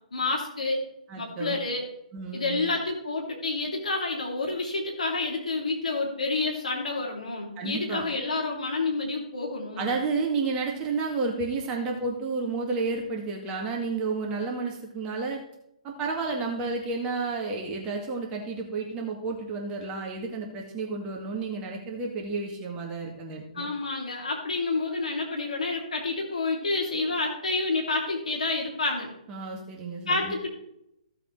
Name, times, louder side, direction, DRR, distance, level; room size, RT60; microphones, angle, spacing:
voice 1, 0.1-0.8 1.2-1.9 2.3-9.9 23.5-29.1 30.1-30.5, left 3 dB, 70° left, -1 dB, 2.9 m, -29 dB
voice 2, 1.1-1.6 2.1-2.7 7.6-8.0 9.8-15.4 15.8-23.7 29.3-30.3, right 4 dB, 20° right, 0 dB, 2.0 m, -31 dB
15.5 x 7.7 x 3.2 m, 0.79 s
figure-of-eight pair, 130°, 4 cm